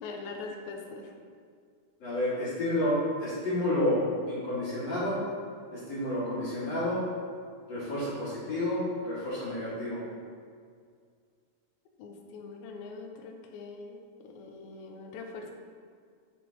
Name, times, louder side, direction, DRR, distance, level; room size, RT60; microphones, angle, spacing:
voice 1, 0.0-1.1 12.0-15.5, left 3 dB, 85° left, 2 dB, 2.4 m, -42 dB
voice 2, 2.0-4.0 4.3-5.2 5.7-7.0 7.7-10.0, left 1 dB, 50° left, -11 dB, 2.6 m, -30 dB
7.3 x 6.8 x 2.8 m, 2.1 s
omnidirectional pair, 4.2 m